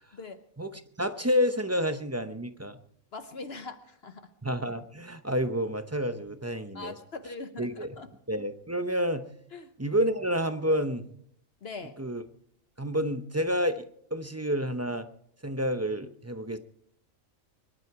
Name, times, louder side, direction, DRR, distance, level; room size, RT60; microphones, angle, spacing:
voice 1, 0.6-2.8 4.4-6.9 7.6-8.0 8.3-9.3 9.8-11.0 12.0-12.2 12.8-13.8 14.1-15.1 15.4-16.6, equal, 15° right, 9 dB, 0.6 m, -29 dB
voice 2, 3.1-4.3 6.7-8.1 9.5-9.7 11.6-12.0, left 3 dB, 50° left, 9 dB, 1.1 m, -41 dB
24.0 x 11.5 x 4.7 m, 0.67 s
omnidirectional pair, 1.4 m